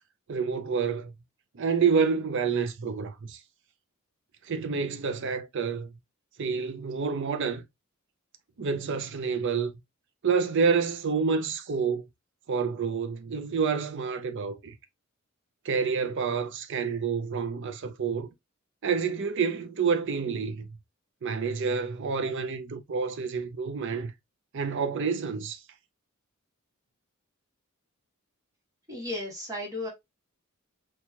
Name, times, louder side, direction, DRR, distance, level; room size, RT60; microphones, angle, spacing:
voice 1, 0.3-1.1 1.5-3.4 4.4-5.9 6.4-7.6 8.6-9.7 10.2-12.1 12.5-14.8 15.6-18.3 18.8-20.7 21.2-24.1 24.5-25.6, right 5 dB, 55° right, 0.5 m, -28 dB
voice 2, 28.9-29.9, left 1 dB, 15° right, 1.4 m, -34 dB
4.4 x 2.4 x 2.7 m
head